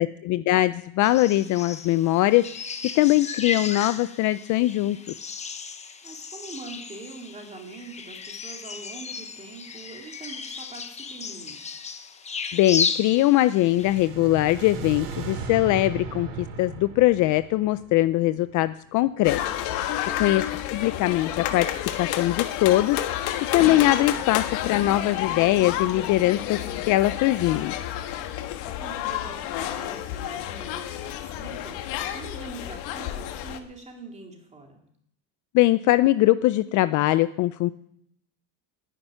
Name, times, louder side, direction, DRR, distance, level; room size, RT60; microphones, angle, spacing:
voice 1, 0.0-2.7 3.0-5.0 12.5-19.4 19.7-19.9 20.2-20.4 20.7-21.7 22.0-23.3 23.5-26.6 26.9-27.7 35.5-37.7, left 16 dB, 45° left, 14 dB, 0.5 m, -21 dB
sound 1, 1.0-14.1, left 5 dB, 15° left, 0.8 m, -34 dB
voice 2, 6.0-11.7 20.1-20.3 28.8-34.8, right 3 dB, 15° right, 1 dB, 2.7 m, -43 dB
sound 2, 13.6-18.7, right 5 dB, 90° right, 2.8 m, -37 dB
sound 3, 19.2-33.6, left 12 dB, 80° left, 1.5 m, -30 dB
10.0 x 10.0 x 9.9 m, 0.74 s
cardioid pair, 155°, 42 cm